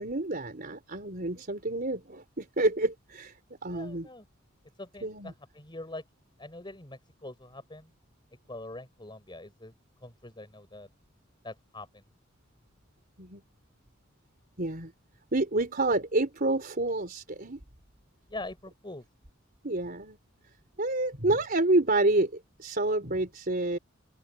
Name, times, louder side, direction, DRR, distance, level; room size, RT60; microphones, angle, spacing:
voice 1, 0.0-3.4 3.6-4.1 5.0-5.3 13.2-13.4 14.6-14.9 15.3-17.6 19.6-20.2 20.8-23.8, right 2 dB, 50° right, 4.0 m, -28 dB
voice 2, 3.7-4.2 4.8-6.0 6.4-7.9 8.5-9.7 10.0-10.9 11.4-12.0 18.3-19.0, left 2 dB, 25° left, 5.8 m, -43 dB
open air
head